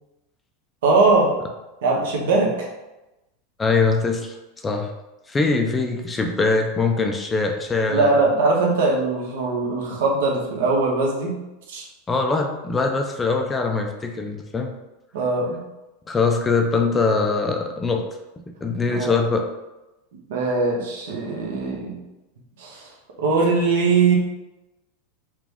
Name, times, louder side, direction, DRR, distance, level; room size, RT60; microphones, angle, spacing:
voice 1, 0.8-1.3 1.8-2.7 7.9-11.4 11.7-11.9 15.1-15.6 18.9-19.1 20.3-22.0 22.6-22.9 23.2-24.2, right 3 dB, 85° right, -1 dB, 1.1 m, -21 dB
voice 2, 3.6-4.3 4.6-4.9 5.3-8.1 12.1-14.7 16.1-18.0 18.4-19.5, left 4 dB, 15° left, 3 dB, 0.4 m, -22 dB
4.8 x 2.3 x 3.5 m, 0.99 s
supercardioid pair, 160°, 0 cm